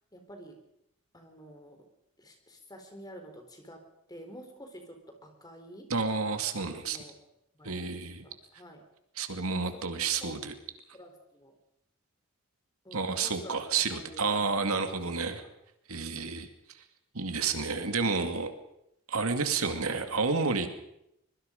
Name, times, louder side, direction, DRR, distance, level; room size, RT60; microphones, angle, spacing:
voice 1, 0.1-0.6 1.1-1.8 2.2-3.8 4.1-5.9 6.6-7.2 7.6-8.8 9.4-9.5 9.7-10.4 10.9-11.5 12.8-14.6 15.0-15.5, equal, 15° left, 4 dB, 4.1 m, -49 dB
voice 2, 5.9-7.0 7.6-8.2 9.2-10.5 12.9-15.4 15.9-16.5 17.1-18.5 19.1-20.7, right 4 dB, 80° right, 7 dB, 2.4 m, -30 dB
24.5 x 22.5 x 5.3 m, 0.79 s
head